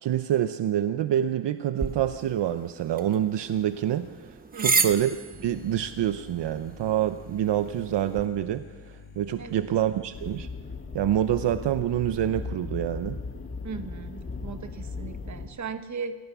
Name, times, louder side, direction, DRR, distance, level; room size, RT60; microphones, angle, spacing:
voice 1, 0.0-5.1 5.4-10.5 10.9-13.2, right 11 dB, 65° right, 10 dB, 0.8 m, -27 dB
sound 1, 1.8-8.3, right 4 dB, 20° right, 1.0 m, -33 dB
voice 2, 4.5-4.9 9.4-9.7 13.6-16.2, right 5 dB, 40° right, 9 dB, 1.3 m, -38 dB
sound 2, 5.3-10.4, left 5 dB, 40° left, 3.4 m, -48 dB
sound 3, 10.1-15.5, left 4 dB, 25° left, 1.8 m, -37 dB
26.5 x 18.0 x 6.0 m, 1.4 s
wide cardioid pair, 160°, 46 cm